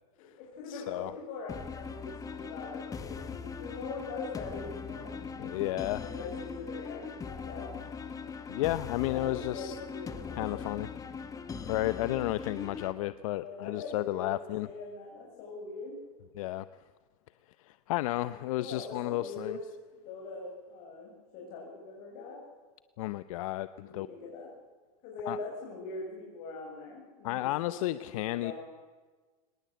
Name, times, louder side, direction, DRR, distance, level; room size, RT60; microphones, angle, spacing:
voice 1, 0.2-5.2 6.0-7.7 9.1-10.8 13.4-16.0 18.6-19.6 20.0-22.4 23.8-24.5 25.0-28.5, left 3 dB, 50° left, -3 dB, 7.3 m, -42 dB
voice 2, 0.7-1.1 5.4-6.0 8.5-9.8 10.4-10.9 11.6-14.7 16.3-16.6 17.7-19.6 23.0-24.1 25.3-25.4 27.2-28.5, left 16 dB, 65° left, 14 dB, 0.8 m, -32 dB
sound 1, 1.5-12.9, left 5 dB, 20° left, 1.7 m, -40 dB
23.5 x 20.0 x 7.9 m, 1.4 s
supercardioid pair, 130°, 19 cm